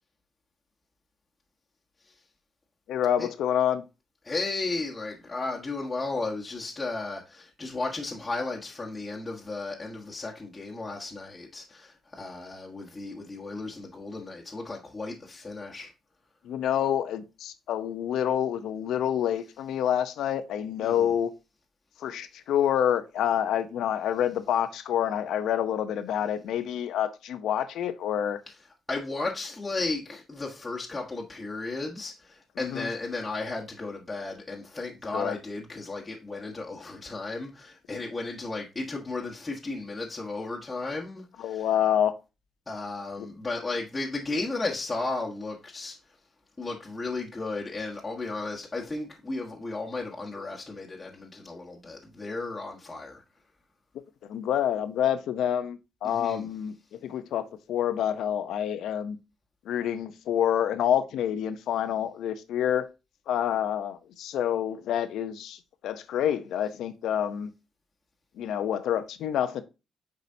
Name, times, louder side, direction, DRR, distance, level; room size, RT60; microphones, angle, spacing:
voice 1, 2.9-3.8 16.4-21.3 22.0-28.4 32.6-32.9 35.1-35.4 41.4-42.1 43.2-43.3 54.3-59.2 59.6-62.9 63.3-67.5 68.4-69.6, left 10 dB, 80° left, 0.8 m, -27 dB
voice 2, 4.2-15.9 20.8-21.1 28.9-41.6 42.7-46.0 46.6-53.2 56.0-56.5, left 3 dB, 20° left, 1.5 m, -34 dB
8.3 x 4.9 x 2.8 m
cardioid pair, 90°, 0 cm